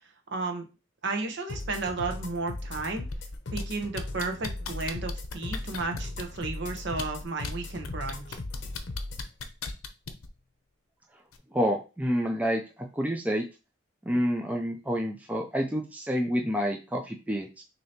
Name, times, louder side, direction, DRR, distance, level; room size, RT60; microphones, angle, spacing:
voice 1, 0.3-0.7 1.0-3.1 3.5-8.4, right 3 dB, 55° right, 4 dB, 0.9 m, -33 dB
sound 1, 1.5-9.3, left 2 dB, 55° left, 0.7 m, -38 dB
sound 2, 3.1-3.6 4.0-6.4 6.9-7.5 7.8-10.3 11.3-11.4, left 5 dB, 90° left, 0.7 m, -37 dB
voice 2, 11.5-12.6 12.9-13.4 14.0-17.6, equal, 5° right, 1 dB, 0.4 m, -28 dB
6.5 x 2.8 x 2.8 m, 0.31 s
head